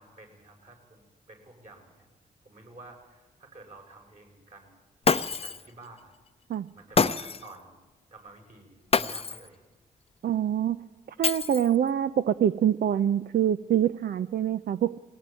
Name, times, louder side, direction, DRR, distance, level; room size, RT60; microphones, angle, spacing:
voice 1, 0.0-2.1 2.4-4.7 5.0-6.1 6.7-7.8 8.1-9.6 10.2-10.4, right 2 dB, 45° right, 2 dB, 7.1 m, -51 dB
Shatter, 5.0-5.7 7.0-7.5 8.9-9.5 11.2-11.9, left 5 dB, 35° left, 0.7 m, -26 dB
voice 2, 10.2-10.9 11.2-15.0, right 10 dB, 70° right, 14 dB, 0.6 m, -25 dB
21.0 x 17.5 x 9.1 m, 1.2 s
cardioid pair, 65°, 17 cm